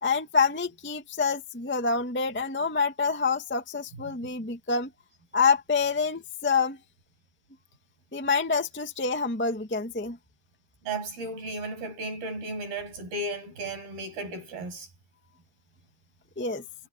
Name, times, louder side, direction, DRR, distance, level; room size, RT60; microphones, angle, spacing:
voice 1, 0.0-4.9 5.3-6.8 8.1-10.2 16.4-16.6, left 4 dB, 5° left, 0.9 m, -27 dB
voice 2, 10.9-14.9, right 2 dB, 85° right, 9.3 m, -34 dB
omnidirectional pair, 4.2 m